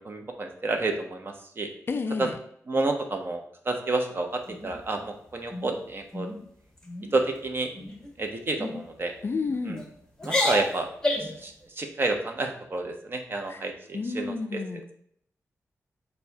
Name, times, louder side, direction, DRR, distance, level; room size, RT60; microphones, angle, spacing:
voice 1, 0.0-1.7 2.2-2.3 2.7-6.3 7.1-7.7 8.2-9.1 9.7-9.8 10.2-10.9 11.2-14.9, right 2 dB, 40° right, 4 dB, 0.7 m, -30 dB
voice 2, 1.9-2.4 9.2-9.8 13.5-13.6 13.9-14.8, left 4 dB, 40° left, 7 dB, 0.4 m, -30 dB
sound 1, 4.5-5.1 5.5-5.7 6.1-6.4 6.8-7.1 7.7-8.1 8.6-8.8 9.5-9.8 10.2-11.4, left 1 dB, 10° left, 0.8 m, -30 dB
6.6 x 2.2 x 2.7 m, 0.68 s
wide cardioid pair, 90°, 6 cm